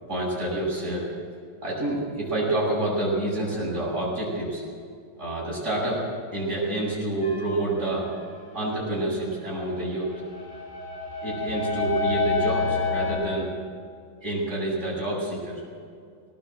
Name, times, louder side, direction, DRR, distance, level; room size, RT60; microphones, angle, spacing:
voice 1, 0.1-1.1 1.6-4.6 5.2-6.0 6.3-8.1 8.5-10.2 11.2-13.5 14.2-15.6, right 1 dB, 35° right, -5 dB, 7.8 m, -28 dB
sound 1, 7.2-7.8 9.7-13.1, left 4 dB, 90° left, 5.8 m, -28 dB
19.0 x 18.5 x 7.8 m, 2.2 s
omnidirectional pair, 2.3 m